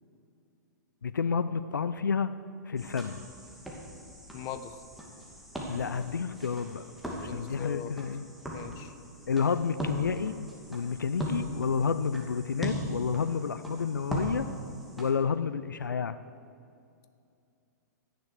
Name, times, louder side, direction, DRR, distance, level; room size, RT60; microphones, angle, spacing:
voice 1, 1.0-2.3 2.7-3.2 5.7-6.8 7.3-8.2 9.3-10.4 10.7-14.5 15.0-16.1, left 6 dB, 85° left, 13 dB, 0.6 m, -30 dB
sound 1, 2.8-15.1, equal, ahead, 2.6 m, -39 dB
voice 2, 4.3-4.8 7.1-7.9 8.5-8.9, left 9 dB, 35° left, 11 dB, 0.9 m, -41 dB
15.0 x 10.5 x 6.6 m, 2.5 s
hypercardioid pair, 120°, 10 cm